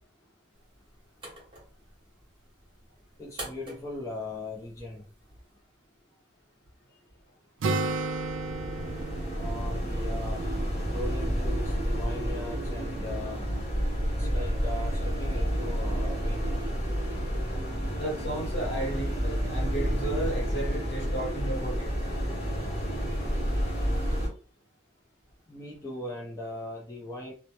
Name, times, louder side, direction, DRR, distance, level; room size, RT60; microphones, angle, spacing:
sound 1, 0.5-5.6, right 1 dB, 25° right, 0.9 m, -47 dB
voice 1, 3.2-5.0 9.4-10.4 10.9-13.4 14.2-16.7 25.5-27.3, left 2 dB, 15° left, 0.4 m, -39 dB
Acoustic guitar, 7.6-11.3, right 3 dB, 80° right, 0.4 m, -33 dB
sound 2, 8.1-24.3, equal, 40° left, 1.0 m, -30 dB
voice 2, 18.0-21.9, right 1 dB, 65° left, 1.0 m, -34 dB
2.1 x 2.0 x 2.8 m
head